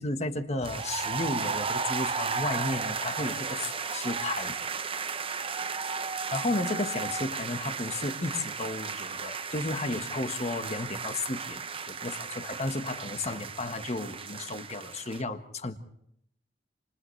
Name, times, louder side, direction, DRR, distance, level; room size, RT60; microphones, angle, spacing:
voice 1, 0.0-4.5 6.3-15.8, left 2 dB, 35° left, 8 dB, 1.4 m, -33 dB
sound 1, 0.6-15.2, right 5 dB, 30° right, 0.8 m, -34 dB
29.0 x 27.5 x 3.3 m, 0.71 s
head